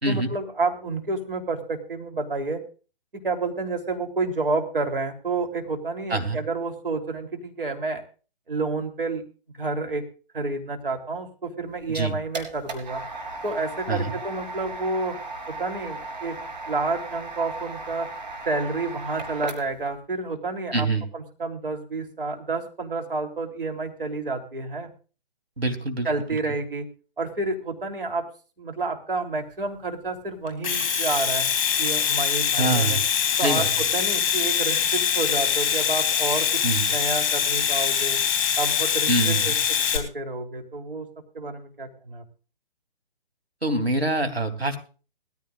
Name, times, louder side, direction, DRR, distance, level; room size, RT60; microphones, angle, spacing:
voice 1, 0.1-2.6 3.2-8.0 8.5-9.2 9.6-10.0 10.3-13.0 13.4-15.2 15.5-16.4 16.7-18.1 18.5-20.9 21.1-24.9 26.0-26.9 27.2-28.3 28.6-31.5 31.8-33.0 33.4-36.6 36.9-38.2 38.6-39.5 39.9-41.1 41.3-42.2, right 3 dB, 65° right, 3 dB, 3.4 m, -29 dB
sound 1, 11.8-19.9, right 3 dB, 45° right, 3.9 m, -36 dB
voice 2, 20.7-21.1 25.6-26.1 32.6-33.0 33.4-33.7 36.6-36.9 39.1-39.6 43.6-44.8, right 2 dB, 85° right, 5 dB, 3.2 m, -25 dB
Domestic sounds home sounds, 30.5-40.0, left 8 dB, 30° left, 3.6 m, -23 dB
20.5 x 14.5 x 2.5 m, 0.36 s
figure-of-eight pair, 140°, 30 cm